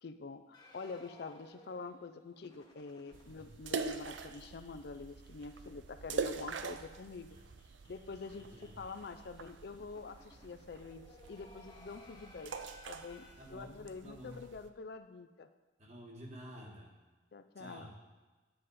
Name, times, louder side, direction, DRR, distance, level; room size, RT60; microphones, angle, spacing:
voice 1, 0.0-7.4 7.9-8.5 8.8-12.6 12.8-15.5 17.3-17.9, left 4 dB, 60° left, 9 dB, 0.4 m, -46 dB
sound 1, 0.5-5.6 5.9-6.0 6.3-6.4 6.6-13.3, left 2 dB, 20° left, 1.2 m, -61 dB
sound 2, 3.1-14.7, right 5 dB, 80° right, 0.5 m, -44 dB
voice 2, 13.4-14.4 15.8-16.9 17.6-18.0, equal, 35° right, -1 dB, 1.6 m, -50 dB
10.0 x 7.7 x 4.1 m, 1.2 s
head